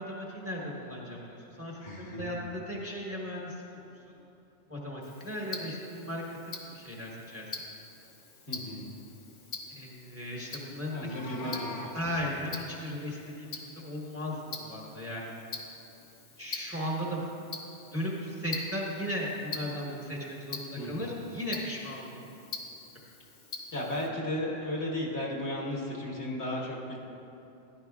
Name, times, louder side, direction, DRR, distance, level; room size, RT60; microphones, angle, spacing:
voice 1, 0.0-3.6 3.9-4.0 4.7-6.2 6.6-7.5 9.7-11.2 11.4-11.6 11.9-15.3 16.4-17.2 17.9-22.4, equal, 10° right, -3 dB, 1.1 m, -36 dB
voice 2, 1.8-2.4 8.5-8.9 10.9-12.3 20.7-21.1 23.7-27.0, left 1 dB, 65° left, -3 dB, 1.7 m, -35 dB
Tick-tock, 5.0-24.1, left 4 dB, 45° left, 1.0 m, -45 dB
Meow, 10.8-11.9, left 3 dB, 85° left, 1.2 m, -42 dB
13.0 x 10.5 x 2.4 m, 2.8 s
omnidirectional pair, 1.2 m